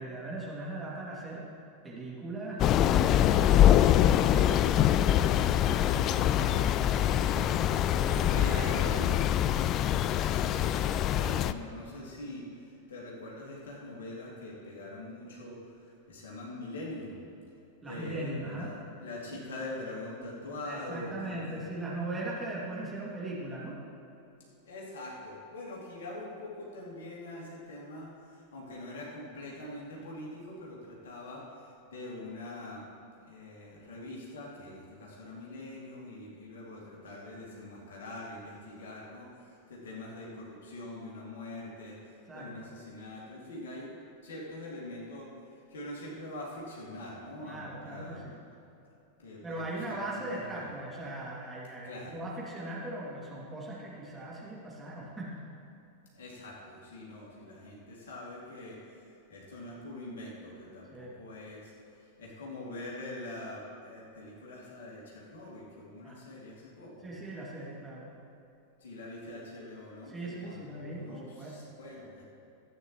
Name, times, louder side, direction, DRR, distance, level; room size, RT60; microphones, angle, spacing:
voice 1, 0.0-1.5 1.8-3.8 8.0-8.8 17.8-18.7 20.7-23.8 42.3-42.7 47.4-48.4 49.4-55.4 60.9-61.1 66.0-66.2 67.0-68.1 70.1-71.6, right 1 dB, 15° right, -5 dB, 2.5 m, -39 dB
Thunder / Rain, 2.6-11.5, left 11 dB, 35° left, 0.3 m, -24 dB
voice 2, 8.3-9.2 10.1-17.2 17.8-21.6 24.6-32.8 33.2-43.9 44.2-48.2 49.2-50.7 51.8-52.2 56.1-67.1 68.8-72.2, left 1 dB, 65° left, -4 dB, 2.5 m, -44 dB
14.5 x 8.9 x 3.1 m, 2.8 s
figure-of-eight pair, 90°, 0 cm